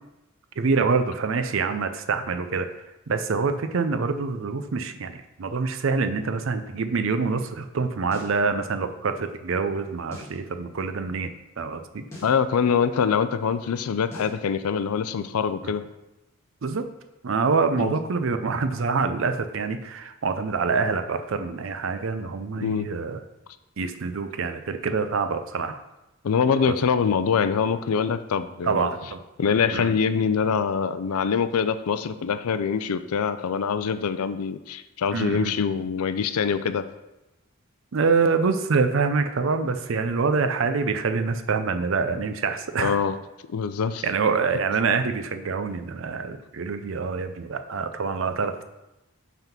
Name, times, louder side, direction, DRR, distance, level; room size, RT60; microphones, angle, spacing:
voice 1, 0.6-2.7 3.1-12.0 15.6-15.7 16.6-16.8 17.2-23.2 23.8-25.8 26.7-26.8 28.6-29.2 29.7-29.9 35.1-35.5 37.9-43.0 44.0-48.6, right 4 dB, 60° right, 8 dB, 0.5 m, -26 dB
sound 1, 8.1-8.4 10.1-10.4 12.1-12.4 14.1-14.4, left 1 dB, 15° left, 1.8 m, -41 dB
voice 2, 12.2-15.8 17.8-17.9 22.6-22.9 26.2-28.9 29.4-36.9 42.8-43.1 43.5-44.0, left 6 dB, 85° left, 12 dB, 0.4 m, -24 dB
5.7 x 3.6 x 5.8 m, 0.97 s
head